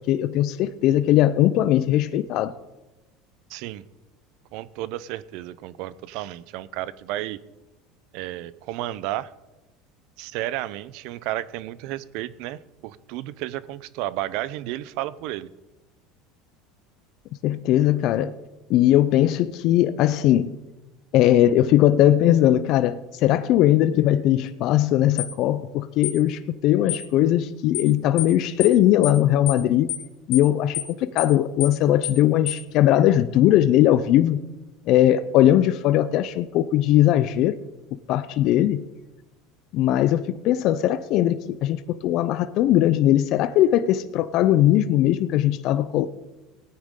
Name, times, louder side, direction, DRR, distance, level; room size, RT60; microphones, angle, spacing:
voice 1, 0.1-2.5 17.4-18.4 18.7-20.5 21.1-29.9 30.3-34.4 34.9-37.6 38.1-38.8 39.7-46.1, left 12 dB, 55° left, 13 dB, 0.5 m, -19 dB
voice 2, 3.5-3.8 4.5-7.4 8.1-9.3 10.2-15.5, right 14 dB, 65° right, 18 dB, 0.6 m, -32 dB
sound 1, 25.2-25.3 26.0-26.2 26.9-27.1 27.7-27.9 28.2-28.3 28.6-28.8 29.0-29.2 29.5-29.6 29.9-30.1 30.3-30.5 30.7-30.9 31.2-31.3 31.6-31.8 32.0-32.2 32.5-32.6, left 13 dB, 75° left, 0.9 m, -29 dB
18.0 x 9.6 x 3.7 m, 1.1 s
supercardioid pair, 130°, 0 cm